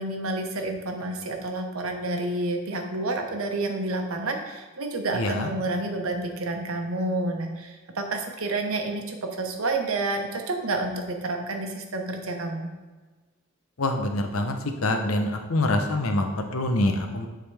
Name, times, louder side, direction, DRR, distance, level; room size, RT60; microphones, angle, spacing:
voice 1, 0.0-12.7, right 2 dB, 85° right, 4 dB, 0.9 m, -29 dB
voice 2, 5.1-5.5 13.8-14.6 14.8-17.3, left 1 dB, 90° left, 4 dB, 0.8 m, -25 dB
9.9 x 3.8 x 3.4 m, 1.3 s
head